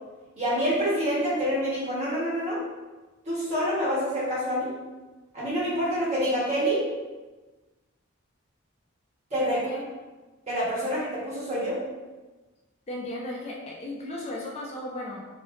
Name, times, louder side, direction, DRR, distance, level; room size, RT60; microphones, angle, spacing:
voice 1, 0.4-2.6 3.2-4.7 5.3-6.8 9.3-9.6 10.5-11.8, equal, 35° right, -8 dB, 1.5 m, -27 dB
voice 2, 9.5-9.8 12.9-15.4, left 1 dB, 35° left, -3 dB, 0.5 m, -36 dB
3.7 x 3.1 x 3.1 m, 1.2 s
head